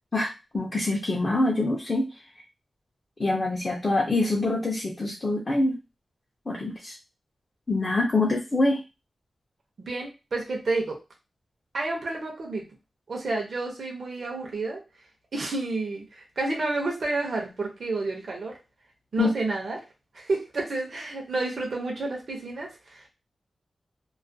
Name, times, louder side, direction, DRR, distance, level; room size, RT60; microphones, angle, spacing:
voice 1, 0.1-2.1 3.2-5.8 6.5-6.9 7.7-8.8 19.2-19.3, left 2 dB, 30° left, -2 dB, 0.4 m, -25 dB
voice 2, 9.8-11.0 11.7-12.6 13.1-14.8 15.3-18.6 19.1-19.8 20.1-23.0, right 2 dB, 55° right, -1 dB, 0.6 m, -30 dB
2.3 x 2.1 x 2.6 m, 0.27 s
wide cardioid pair, 175°, 0 cm